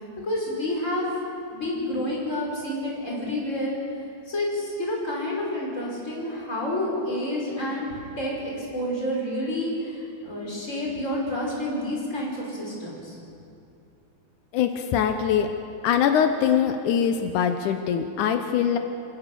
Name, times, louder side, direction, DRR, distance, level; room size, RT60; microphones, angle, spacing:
voice 1, 0.2-1.1 1.5-3.7 4.3-13.2, left 1 dB, 20° left, -3 dB, 5.7 m, -29 dB
voice 2, 14.5-15.5 15.8-18.8, left 8 dB, 85° left, 7 dB, 2.4 m, -23 dB
27.5 x 17.0 x 6.9 m, 2.6 s
omnidirectional pair, 3.5 m